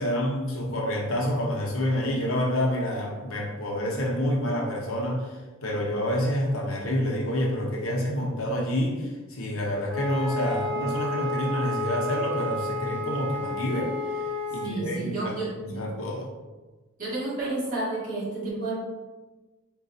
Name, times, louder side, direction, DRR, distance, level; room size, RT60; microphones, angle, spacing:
voice 1, 0.0-15.3 15.6-16.3, equal, 75° left, -2 dB, 0.7 m, -28 dB
Wind instrument woodwind instrument, 9.9-14.7, left 2 dB, 25° right, 1.2 m, -31 dB
voice 2, 14.6-15.8 17.0-18.7, right 2 dB, 40° right, -9 dB, 1.4 m, -31 dB
3.9 x 2.3 x 2.6 m, 1.2 s
head